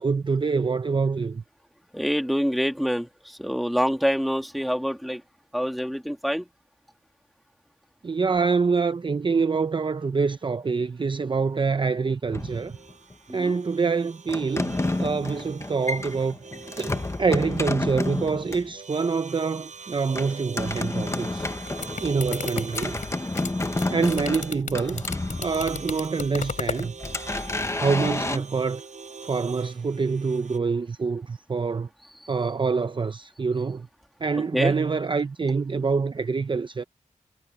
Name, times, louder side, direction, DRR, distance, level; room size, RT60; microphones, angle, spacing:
voice 1, 0.0-1.4 8.0-12.8 13.3-16.4 16.8-21.5 22.0-23.0 23.9-25.0 25.4-26.9 27.7-28.8 29.2-31.9 32.3-33.9 34.2-36.8, right 4 dB, 40° right, 0.6 m, -26 dB
voice 2, 1.9-5.2 5.5-6.4 13.3-13.5 28.3-28.4 34.5-34.7, equal, ahead, 2.7 m, -26 dB
sound 1, 12.3-13.1 14.3-18.7 20.1-25.9 26.4-28.4, left 2 dB, 20° left, 1.0 m, -30 dB
sound 2, 12.4-30.6, right 5 dB, 65° right, 5.9 m, -44 dB
sound 3, 21.5-26.9, left 5 dB, 75° left, 3.1 m, -34 dB
wide cardioid pair, 115°, 13 cm